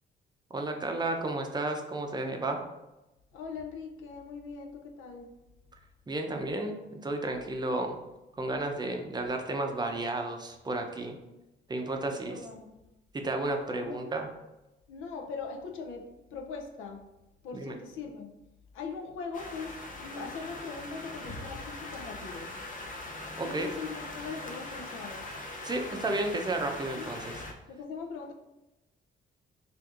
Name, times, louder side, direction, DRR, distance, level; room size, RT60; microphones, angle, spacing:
voice 1, 0.5-2.6 6.1-8.0 8.4-11.2 11.7-12.4 13.1-14.3 17.6-17.7 23.4-23.7 25.6-27.4, right 2 dB, 20° right, 4 dB, 0.5 m, -32 dB
voice 2, 3.3-5.3 12.0-12.7 13.8-14.0 14.9-16.0 16.3-17.0 17.4-18.3 18.7-22.5 23.4-25.3 27.0-27.1 27.7-28.3, left 5 dB, 85° left, 3 dB, 0.5 m, -41 dB
sound 1, 19.3-27.5, left 2 dB, 40° left, 0.6 m, -41 dB
4.4 x 2.5 x 2.4 m, 0.98 s
cardioid pair, 90°, 20 cm